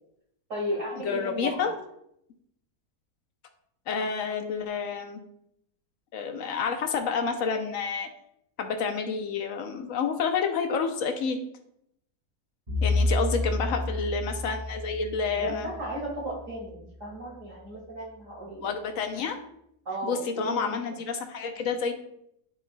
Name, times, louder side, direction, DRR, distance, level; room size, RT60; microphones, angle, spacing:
voice 1, 0.5-1.7 12.8-13.1 13.6-14.0 15.4-18.7 19.8-20.8, right 1 dB, 50° right, -4 dB, 2.7 m, -35 dB
voice 2, 1.0-1.7 3.9-5.2 6.1-8.1 8.6-11.4 12.8-15.7 18.6-19.3 20.0-21.9, left 5 dB, 60° left, 5 dB, 1.1 m, -29 dB
Bowed string instrument, 12.7-16.9, left 2 dB, 25° right, 2.1 m, -30 dB
10.5 x 4.8 x 2.3 m, 0.76 s
omnidirectional pair, 1.8 m